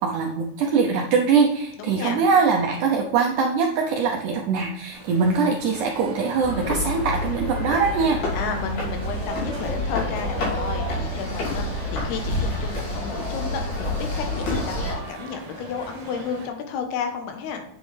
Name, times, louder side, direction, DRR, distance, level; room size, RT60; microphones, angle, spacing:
voice 1, 0.0-8.2, right 5 dB, 85° right, 2 dB, 1.7 m, -22 dB
voice 2, 1.8-2.2 8.3-17.6, left 6 dB, 85° left, 5 dB, 3.1 m, -32 dB
sound 1, 4.9-16.5, right 2 dB, 45° right, 2.0 m, -42 dB
sound 2, 6.4-14.9, left 1 dB, 60° left, 4.5 m, -28 dB
8.4 x 7.2 x 3.3 m, 0.80 s
omnidirectional pair, 4.5 m